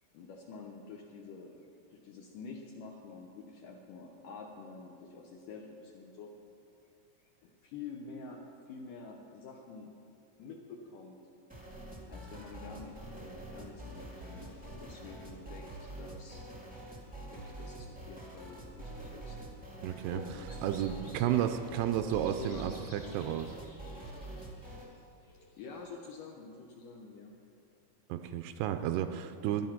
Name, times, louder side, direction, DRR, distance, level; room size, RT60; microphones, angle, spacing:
voice 1, 0.1-1.5 1.9-6.3 7.4-8.4 8.7-9.9 10.4-11.2 12.1-16.4 17.3-19.4 20.1-21.5 22.0-22.7 23.1-23.2 25.6-27.3, left 4 dB, 70° left, 1 dB, 2.1 m, -48 dB
sound 1, 11.5-24.9, right 1 dB, 10° right, 0.5 m, -46 dB
voice 2, 19.8-20.2 20.6-23.5 28.1-29.7, right 11 dB, 80° right, 8 dB, 2.5 m, -32 dB
sound 2, 20.5-26.1, left 1 dB, 45° left, 0.7 m, -58 dB
15.0 x 11.0 x 5.8 m, 2.5 s
omnidirectional pair, 4.8 m